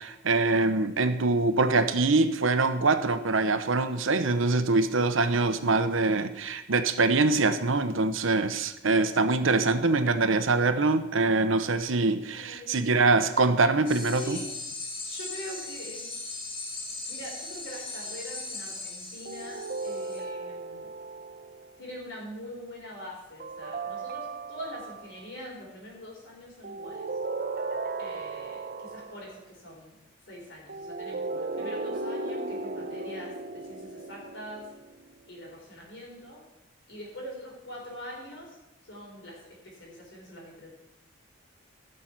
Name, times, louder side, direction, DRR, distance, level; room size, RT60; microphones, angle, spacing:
voice 1, 0.0-14.4, right 3 dB, 85° right, 10 dB, 0.9 m, -24 dB
voice 2, 12.3-12.8 14.2-14.5 15.0-16.1 17.1-20.9 21.8-27.1 28.0-30.0 30.3-34.6 35.3-36.4 36.9-38.5 38.9-39.4 39.6-40.7, equal, 65° left, -2 dB, 4.4 m, -43 dB
sound 1, 13.9-20.2, left 3 dB, 30° left, 1.9 m, -38 dB
sound 2, 19.3-21.7 23.4-25.2 26.6-29.4 30.7-35.2, right 3 dB, 45° right, 0.7 m, -36 dB
15.5 x 6.6 x 5.9 m, 0.91 s
head